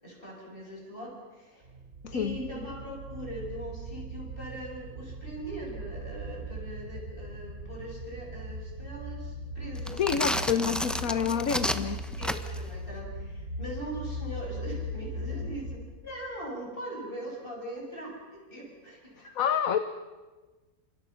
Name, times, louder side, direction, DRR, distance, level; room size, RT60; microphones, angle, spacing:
voice 1, 0.0-1.6 2.1-10.4 11.1-11.8 12.2-19.4, right 1 dB, 30° left, -1 dB, 7.9 m, -41 dB
sound 1, 1.6-15.7, equal, 50° right, 5.5 m, -39 dB
sound 2, 9.8-12.7, equal, ahead, 0.9 m, -31 dB
voice 2, 9.9-12.0 19.3-19.8, left 8 dB, 60° left, 9 dB, 1.4 m, -27 dB
29.5 x 27.0 x 5.9 m, 1.2 s
omnidirectional pair, 1.8 m